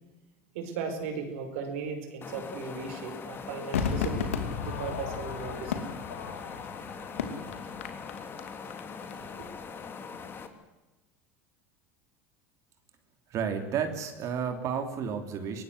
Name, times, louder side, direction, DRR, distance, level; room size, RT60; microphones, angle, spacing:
voice 1, 0.5-4.3 4.6-5.7 9.2-9.3, right 5 dB, 70° right, 6 dB, 5.0 m, -37 dB
sound 1, 2.2-10.5, left 5 dB, 30° left, 2.8 m, -42 dB
Crowd / Fireworks, 3.7-9.1 9.4-9.5, left 6 dB, 85° left, 2.6 m, -34 dB
voice 2, 13.3-15.6, right 7 dB, 50° right, 6 dB, 3.2 m, -31 dB
23.5 x 19.0 x 8.1 m, 1.1 s
hypercardioid pair, 85°, 7 cm